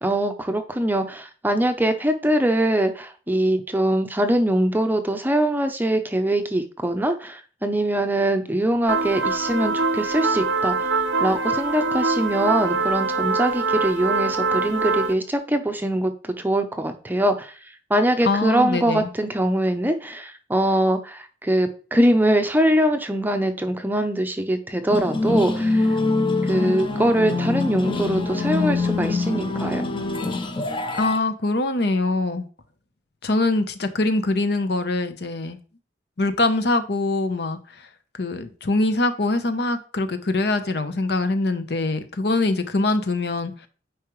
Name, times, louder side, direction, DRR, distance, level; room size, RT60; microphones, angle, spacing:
voice 1, 0.0-10.9 11.2-26.0 26.4-29.9, right 1 dB, 10° right, 7 dB, 0.6 m, -22 dB
sound 1, 8.9-15.1, right 4 dB, 85° right, 0.7 m, -23 dB
voice 2, 18.2-19.1 31.0-32.5 33.2-35.6 36.2-37.6 38.1-43.7, left 2 dB, 60° left, 9 dB, 0.8 m, -23 dB
sound 2, 24.9-31.2, left 3 dB, 25° left, 0.7 m, -24 dB
9.5 x 4.8 x 3.1 m, 0.38 s
head